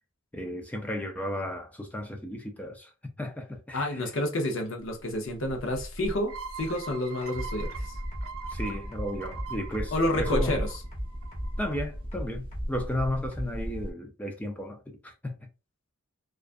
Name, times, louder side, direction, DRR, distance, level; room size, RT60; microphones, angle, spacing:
voice 1, 0.3-4.0 8.5-10.5 11.6-15.5, left 1 dB, 5° left, 0.3 m, -34 dB
voice 2, 3.7-8.0 9.9-10.8, left 1 dB, 60° left, 0.7 m, -29 dB
sound 1, 4.8-13.9, equal, 25° right, 0.7 m, -38 dB
sound 2, 6.3-11.8, right 6 dB, 70° right, 0.5 m, -43 dB
sound 3, 7.3-13.7, equal, 30° left, 1.1 m, -37 dB
2.4 x 2.3 x 2.4 m
head